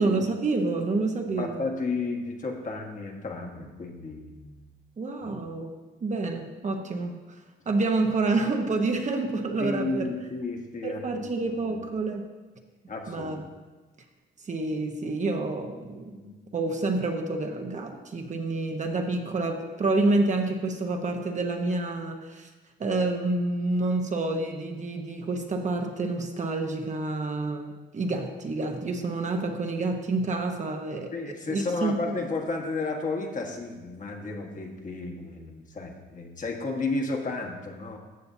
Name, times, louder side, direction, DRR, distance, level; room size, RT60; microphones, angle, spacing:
voice 1, 0.0-1.7 5.0-5.7 6.0-7.2 7.7-10.1 10.8-12.3 13.1-13.4 14.5-16.2 16.5-22.5 22.8-32.1, right 2 dB, 40° right, 3 dB, 1.0 m, -28 dB
voice 2, 1.4-4.7 5.2-5.3 9.6-11.3 11.7-11.8 12.9-13.3 16.2-16.3 31.1-38.0, left 3 dB, 40° left, 1 dB, 1.5 m, -33 dB
14.0 x 6.8 x 2.7 m, 1.3 s
cardioid pair, 90°, 20 cm